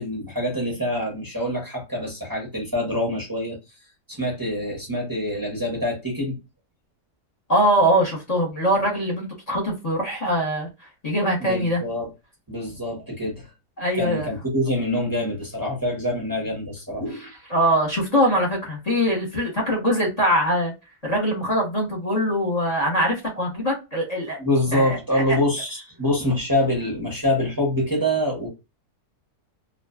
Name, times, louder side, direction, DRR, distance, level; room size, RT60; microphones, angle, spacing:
voice 1, 0.0-3.6 4.1-6.4 11.4-12.1 12.5-13.5 14.0-17.3 24.4-28.5, left 1 dB, 20° right, 0.6 m, -25 dB
voice 2, 7.5-10.7 11.0-11.8 13.8-14.3 17.5-20.7 21.0-24.4 24.7-25.4, equal, 30° left, 0.9 m, -22 dB
2.5 x 2.3 x 2.3 m
omnidirectional pair, 1.6 m